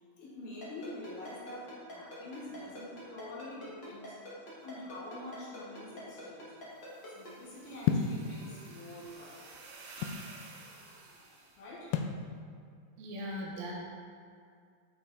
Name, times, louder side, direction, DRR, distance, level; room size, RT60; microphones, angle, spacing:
voice 1, 0.0-4.2 4.6-6.5 7.2-9.4 11.6-12.0, left 1 dB, 60° left, -5 dB, 2.6 m, -46 dB
Ringtone, 0.6-7.3, equal, 40° left, 1.8 m, -46 dB
sound 1, 6.7-11.6, right 3 dB, 90° right, 3.0 m, -52 dB
sound 2, 7.9-8.2 9.1-10.3 11.9-12.2, left 7 dB, 80° left, 2.2 m, -31 dB
voice 2, 13.0-13.7, equal, 70° right, -3 dB, 2.9 m, -39 dB
8.4 x 6.0 x 4.0 m, 2.2 s
omnidirectional pair, 4.4 m